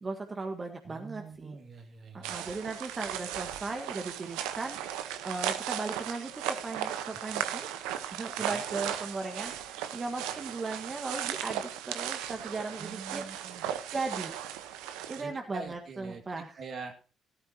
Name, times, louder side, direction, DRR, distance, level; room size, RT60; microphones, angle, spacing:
voice 1, 0.0-1.5 2.1-6.3 6.6-7.7 8.1-13.2 13.9-14.4 15.1-16.6, right 3 dB, 35° right, 4 dB, 1.6 m, -37 dB
voice 2, 0.8-2.4 8.4-8.6 12.8-13.6 15.2-16.2 16.6-16.9, right 4 dB, 55° right, 5 dB, 2.4 m, -44 dB
sound 1, 2.2-15.2, right 10 dB, 80° right, 1.0 m, -36 dB
14.0 x 13.0 x 2.9 m, 0.36 s
hypercardioid pair, 55°, 0 cm